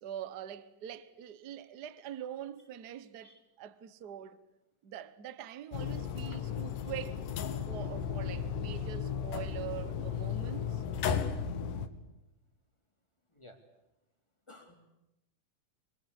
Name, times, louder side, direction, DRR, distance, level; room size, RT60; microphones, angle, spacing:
voice 1, 0.0-4.4 4.8-7.2 7.7-10.8, right 10 dB, 85° right, 0.8 m, -44 dB
sound 1, 5.7-11.9, left 7 dB, 90° left, 3.0 m, -35 dB
voice 2, 14.5-14.8, left 1 dB, 10° left, 2.9 m, -54 dB
25.5 x 25.0 x 8.4 m
omnidirectional pair, 3.6 m